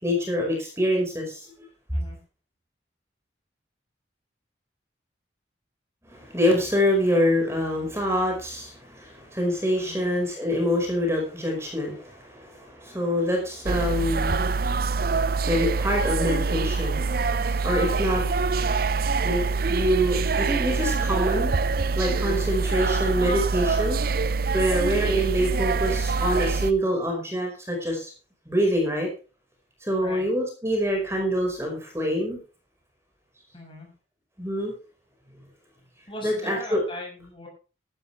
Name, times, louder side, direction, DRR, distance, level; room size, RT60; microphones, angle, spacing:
voice 1, 0.0-1.5 6.1-18.3 19.2-21.5 22.0-24.0 24.5-28.1 28.5-29.1 29.8-32.4 34.4-34.7 36.2-36.8, equal, 15° right, 1 dB, 5.2 m, -26 dB
sound 1, 13.7-26.7, right 4 dB, 50° right, 0.6 m, -25 dB
voice 2, 24.7-25.1 30.0-30.2 33.5-33.9 36.1-37.5, left 1 dB, 25° left, 1 dB, 6.5 m, -39 dB
15.0 x 12.5 x 3.4 m, 0.35 s
head